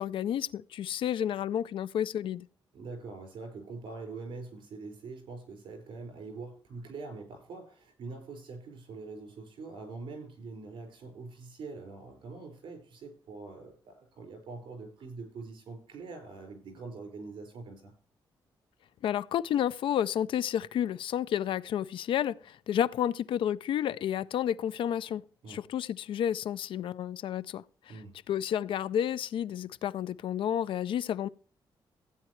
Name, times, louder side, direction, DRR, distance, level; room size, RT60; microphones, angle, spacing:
voice 1, 0.0-2.5 19.0-25.2 25.5-27.6 28.3-31.3, left 10 dB, 85° left, 0.4 m, -31 dB
voice 2, 2.7-17.9 25.4-25.6 27.9-28.1, right 3 dB, 85° right, 5.3 m, -44 dB
15.5 x 9.1 x 3.2 m
cardioid pair, 120°, 9 cm